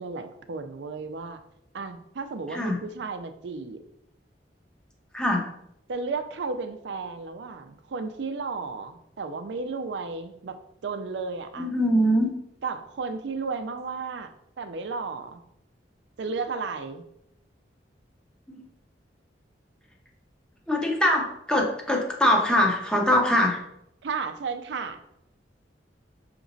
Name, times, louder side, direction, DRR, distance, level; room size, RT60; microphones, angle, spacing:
voice 1, 0.0-1.4 1.7-3.8 5.9-10.6 10.8-11.7 12.6-14.3 14.6-15.4 16.2-17.0 24.0-25.0, right 4 dB, 70° right, 8 dB, 0.4 m, -33 dB
voice 2, 11.6-12.3 18.5-18.6 20.7-23.6, equal, 5° left, 0 dB, 0.6 m, -23 dB
6.0 x 2.9 x 2.6 m, 0.77 s
head